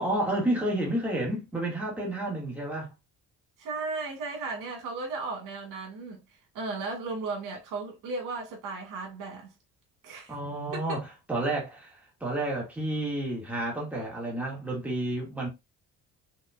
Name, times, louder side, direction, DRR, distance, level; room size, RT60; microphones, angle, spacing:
voice 1, 0.0-2.9 10.3-15.5, right 1 dB, 5° right, 1.7 m, -30 dB
voice 2, 3.6-6.2 6.5-9.5 10.0-10.4 10.7-11.0, right 3 dB, 85° right, 2.1 m, -35 dB
5.3 x 2.8 x 2.3 m
cardioid pair, 145°, 31 cm